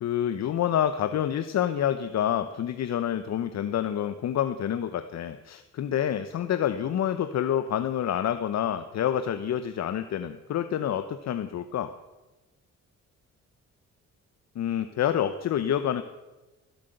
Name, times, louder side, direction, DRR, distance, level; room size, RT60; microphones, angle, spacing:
voice 1, 0.0-11.9 14.5-16.0, left 10 dB, 60° left, 10 dB, 0.9 m, -28 dB
15.5 x 8.3 x 8.0 m, 1.1 s
cardioid pair, 90°, 30 cm